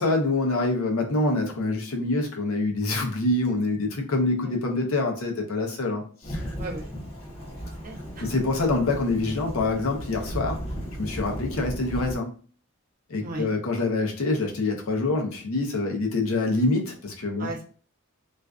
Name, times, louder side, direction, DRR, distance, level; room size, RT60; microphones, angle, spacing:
voice 1, 0.0-6.5 8.2-10.6 11.0-12.3 13.1-17.5, left 2 dB, 75° left, 2 dB, 0.6 m, -26 dB
Thunderstorm / Rain, 6.2-12.2, equal, 30° left, 0.8 m, -35 dB
voice 2, 6.6-7.0 7.3-8.3 13.2-13.5 17.4-17.6, right 2 dB, 40° right, 0 dB, 0.6 m, -37 dB
2.4 x 2.2 x 2.3 m, 0.41 s
head